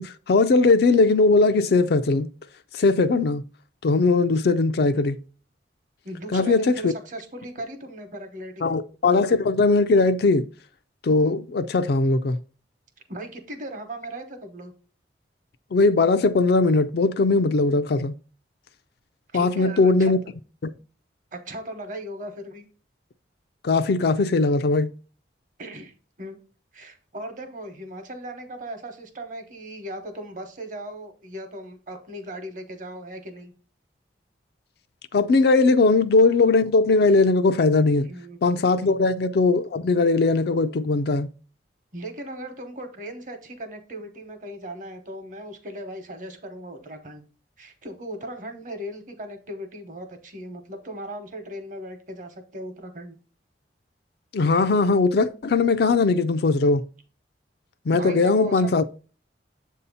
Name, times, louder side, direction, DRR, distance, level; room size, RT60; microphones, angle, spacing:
voice 1, 0.0-2.3 2.7-3.4 3.8-5.2 6.3-6.9 8.6-10.5 11.0-12.4 15.7-18.1 19.3-20.2 23.6-24.9 35.1-38.1 38.4-41.3 54.3-56.8 57.9-58.8, left 3 dB, 60° left, 0.4 m, -19 dB
voice 2, 6.0-8.7 13.1-14.7 19.3-20.2 21.3-22.7 25.6-26.4 26.7-33.5 35.8-35.9 38.0-38.4 41.9-47.3 47.6-53.2 57.9-58.7, right 1 dB, 45° right, 1.0 m, -37 dB
7.6 x 2.8 x 5.4 m
head